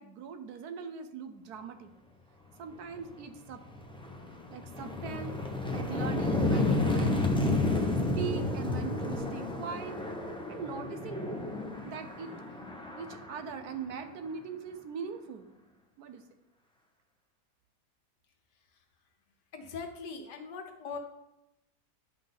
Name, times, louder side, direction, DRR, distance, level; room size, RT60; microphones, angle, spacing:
voice 1, 0.0-1.9 2.6-3.6 4.5-5.4 5.7-7.7 8.2-10.0 10.5-11.3 11.8-12.3 13.0-15.5 16.0-16.2, right 7 dB, 70° right, 8 dB, 1.2 m, -40 dB
sound 1, 3.0-3.1 3.5-14.3, left 2 dB, 5° left, 0.5 m, -31 dB
voice 2, 19.5-21.0, left 5 dB, 85° left, 4 dB, 1.7 m, -40 dB
10.5 x 5.6 x 4.0 m, 0.89 s
omnidirectional pair, 1.8 m